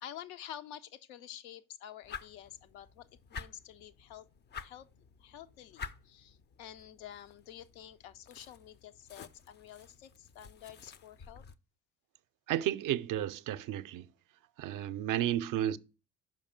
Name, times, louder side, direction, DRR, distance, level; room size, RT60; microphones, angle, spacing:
voice 1, 0.0-4.3 4.6-4.9 5.2-11.4, left 10 dB, 75° left, 0.6 m, -49 dB
sound 1, 2.0-11.6, left 6 dB, 25° left, 0.4 m, -50 dB
voice 2, 12.5-14.1 14.6-15.8, right 12 dB, 50° right, 0.5 m, -32 dB
5.4 x 5.2 x 5.1 m
hypercardioid pair, 50°, 43 cm